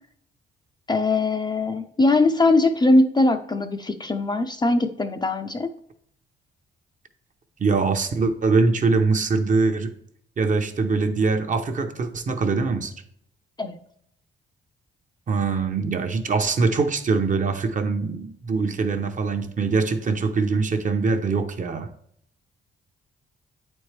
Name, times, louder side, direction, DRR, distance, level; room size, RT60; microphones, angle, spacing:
voice 1, 0.9-5.7 13.6-13.8, left 2 dB, 20° left, 7 dB, 0.5 m, -21 dB
voice 2, 7.6-9.9 10.4-12.9 15.3-21.9, right 4 dB, 40° right, 6 dB, 0.7 m, -23 dB
8.8 x 4.4 x 3.2 m, 0.67 s
cardioid pair, 100°, 20 cm